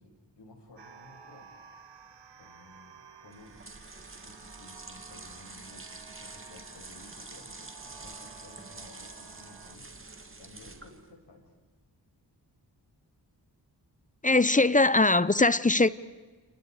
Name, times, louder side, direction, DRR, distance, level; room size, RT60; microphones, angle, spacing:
voice 1, 0.0-1.5 2.4-3.6 4.2-11.5, left 2 dB, 75° left, 6.9 m, -55 dB
sound 1, 0.8-9.8, right 6 dB, 75° right, 1.6 m, -53 dB
sound 2, 3.3-11.1, right 3 dB, 30° right, 2.2 m, -47 dB
voice 2, 14.2-15.9, left 2 dB, 20° left, 0.7 m, -21 dB
29.0 x 28.5 x 4.9 m
cardioid pair, 65°, 43 cm